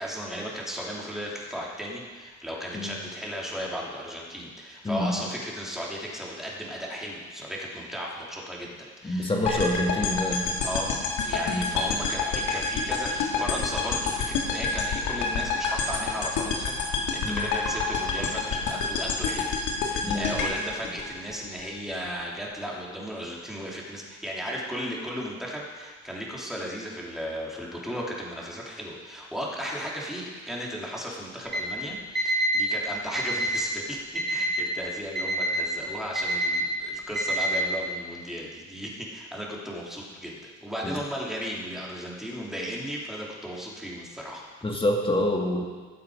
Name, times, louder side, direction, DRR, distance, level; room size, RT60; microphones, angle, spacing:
voice 1, 0.0-9.9 10.6-19.5 19.8-44.4, equal, ahead, -4 dB, 3.3 m, -35 dB
voice 2, 4.8-5.2 9.0-10.5 11.4-11.7 17.2-17.5 20.0-20.4 40.8-41.0 44.6-45.7, left 1 dB, 15° left, 0 dB, 2.3 m, -27 dB
sound 1, 9.5-21.6, left 4 dB, 85° left, 1.8 m, -28 dB
Alarm, 31.5-31.6 32.1-32.6 33.1-33.6 34.1-34.6 35.1-35.6 36.1-36.6 37.1-37.6, right 1 dB, 35° right, 2.5 m, -26 dB
18.5 x 7.3 x 5.1 m, 1.5 s
cardioid pair, 90°, 30 cm